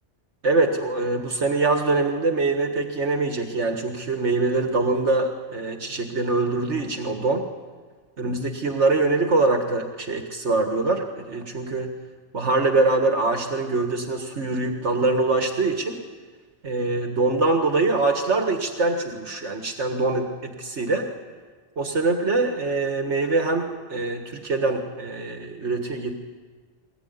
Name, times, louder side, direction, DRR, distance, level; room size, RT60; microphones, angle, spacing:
voice 1, 0.4-7.4 8.2-11.9 12.3-16.0 16.6-21.1 21.8-26.1, right 3 dB, 70° right, 4 dB, 2.0 m, -23 dB
22.5 x 19.0 x 9.5 m, 1.5 s
omnidirectional pair, 1.2 m